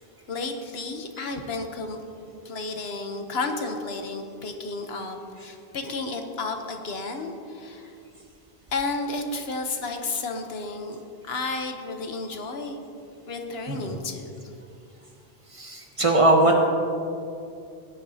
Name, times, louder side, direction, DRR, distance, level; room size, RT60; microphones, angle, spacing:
voice 1, 0.3-2.0 2.4-7.9 8.7-11.0 11.2-12.8 13.3-14.3, left 3 dB, 75° left, 5 dB, 1.2 m, -32 dB
voice 2, 13.7-14.0 15.5-16.7, right 2 dB, 35° right, 1 dB, 1.1 m, -20 dB
16.5 x 9.7 x 2.8 m, 2.5 s
omnidirectional pair, 1.1 m